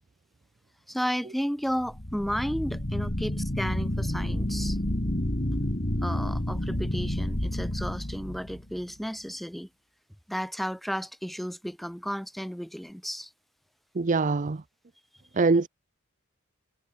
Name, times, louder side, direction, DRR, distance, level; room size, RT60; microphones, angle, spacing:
voice 1, 0.9-4.8 6.0-9.7 10.3-13.3, equal, ahead, 4.7 m, -33 dB
sound 1, 1.8-8.8, left 1 dB, 35° left, 2.3 m, -30 dB
voice 2, 14.0-14.6 15.4-15.7, right 3 dB, 35° right, 0.5 m, -23 dB
head